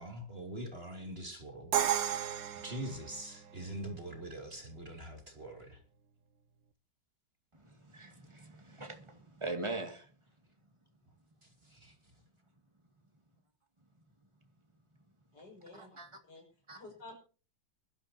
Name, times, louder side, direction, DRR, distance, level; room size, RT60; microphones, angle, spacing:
voice 1, 0.0-2.0 2.6-5.8 11.4-11.9, right 1 dB, 30° right, 3.0 m, -44 dB
Crash cymbal, 1.7-3.6, right 10 dB, 80° right, 1.7 m, -33 dB
voice 2, 7.6-10.1 15.8-16.1 16.7-16.8, right 2 dB, 15° right, 2.3 m, -41 dB
voice 3, 15.3-16.0 16.2-17.2, left 2 dB, 65° left, 6.7 m, -52 dB
23.5 x 12.5 x 2.9 m
omnidirectional pair, 2.0 m